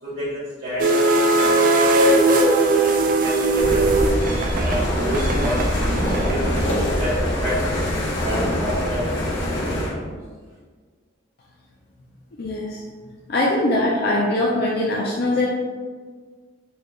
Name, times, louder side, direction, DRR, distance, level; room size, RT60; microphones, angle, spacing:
voice 1, 0.0-3.8 4.5-6.0 6.2-7.7 8.2-10.2, equal, 80° right, -14 dB, 1.4 m, -30 dB
sound 1, 0.8-7.1, right 2 dB, 45° right, 0.3 m, -19 dB
sound 2, 3.6-9.9, left 1 dB, 75° left, 1.0 m, -24 dB
voice 2, 12.4-12.8 13.3-15.5, left 1 dB, 50° left, -4 dB, 0.4 m, -21 dB
4.4 x 2.4 x 3.0 m, 1.5 s
head